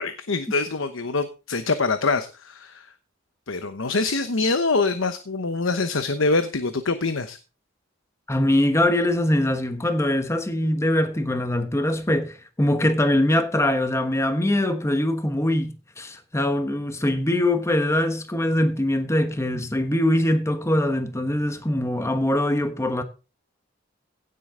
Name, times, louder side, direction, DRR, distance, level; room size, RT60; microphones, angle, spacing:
voice 1, 0.0-2.9 3.5-7.4, left 3 dB, 90° left, 1.0 m, -24 dB
voice 2, 8.3-23.0, left 1 dB, 15° left, 1.1 m, -22 dB
16.5 x 7.8 x 3.8 m
head